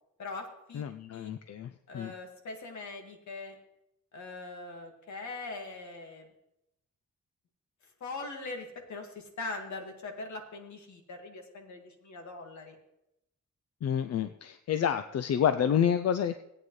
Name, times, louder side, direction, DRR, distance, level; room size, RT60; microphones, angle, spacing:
voice 1, 0.2-0.8 1.1-1.3 1.9-3.6 4.1-6.3 8.0-12.7, left 3 dB, 75° left, 3 dB, 2.0 m, -41 dB
voice 2, 0.7-2.1 13.8-16.4, left 8 dB, 60° left, 10 dB, 0.5 m, -29 dB
17.5 x 8.9 x 3.2 m, 0.86 s
wide cardioid pair, 120°, 29 cm